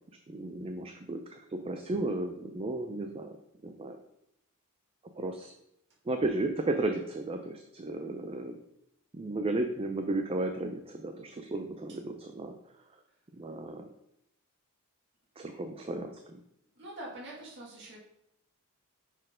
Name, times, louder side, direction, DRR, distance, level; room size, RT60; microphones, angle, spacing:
voice 1, 0.3-3.4 3.6-4.0 5.2-5.5 6.1-8.6 9.1-12.5 13.3-13.9 15.4-16.4, right 2 dB, 25° right, 5 dB, 0.4 m, -34 dB
voice 2, 16.8-18.0, right 1 dB, 55° right, -5 dB, 2.0 m, -44 dB
6.2 x 4.4 x 5.0 m, 0.79 s
head